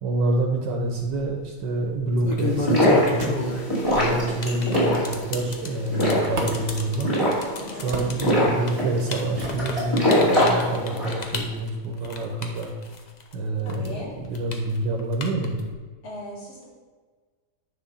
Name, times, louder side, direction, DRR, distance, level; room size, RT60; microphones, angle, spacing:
voice 1, 0.0-3.3 3.9-7.1 7.7-12.7 13.3-15.5, right 2 dB, 85° right, 1 dB, 1.6 m, -27 dB
sound 1, 0.9-1.2 2.0-13.3 13.7-15.7, left 2 dB, 60° left, 0.4 m, -32 dB
sound 2, 2.4-11.3, equal, 15° left, 2.5 m, -23 dB
sound 3, 3.2-3.4 4.7-5.0 6.3-6.7 7.9-8.2 9.4-9.6, right 2 dB, 45° right, 1.4 m, -31 dB
voice 2, 7.5-7.9 13.6-14.1 16.0-16.6, equal, 40° left, -5 dB, 2.3 m, -38 dB
9.9 x 4.1 x 5.5 m, 1.4 s
omnidirectional pair, 1.9 m